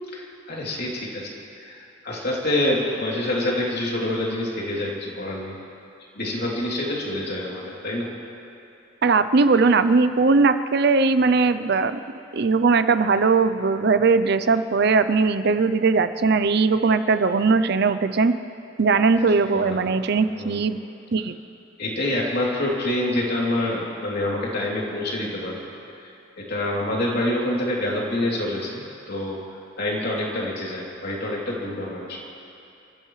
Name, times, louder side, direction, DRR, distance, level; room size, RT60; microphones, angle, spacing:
voice 1, 0.1-1.3 1.6-1.8 2.0-5.5 6.1-8.1 19.5-19.8 20.4-20.6 21.8-25.6 26.4-29.4 29.8-32.2, left 1 dB, 55° left, -4 dB, 3.1 m, -26 dB
voice 2, 9.0-12.0 12.3-18.4 18.8-20.8 21.1-21.3, right 4 dB, 55° right, 11 dB, 0.5 m, -19 dB
29.0 x 14.5 x 3.2 m, 2.7 s
head